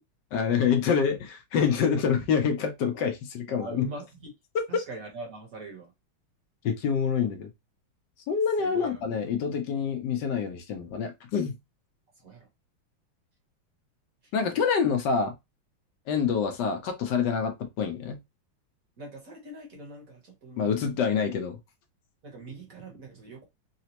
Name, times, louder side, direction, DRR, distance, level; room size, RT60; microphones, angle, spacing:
voice 1, 0.3-3.9 6.6-7.5 8.3-11.5 14.3-15.3 16.1-18.2 20.6-21.6, left 6 dB, 70° left, 1.2 m, -26 dB
voice 2, 3.6-4.3 4.7-5.9 8.6-9.0 12.2-12.5 19.0-21.0 22.2-23.4, right 3 dB, 50° right, 1.3 m, -42 dB
4.1 x 2.1 x 2.8 m
omnidirectional pair, 2.2 m